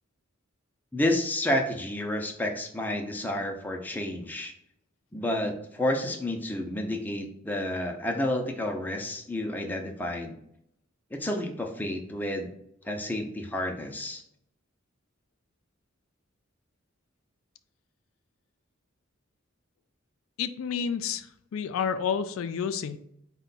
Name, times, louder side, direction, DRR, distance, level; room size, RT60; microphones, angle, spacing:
voice 1, 0.9-4.5 5.1-10.4 11.1-12.5 12.9-14.2, left 1 dB, 10° left, 2 dB, 0.5 m, -30 dB
voice 2, 20.4-21.3 21.5-23.0, left 7 dB, 85° left, 10 dB, 0.3 m, -29 dB
4.4 x 2.2 x 3.9 m, 0.73 s
head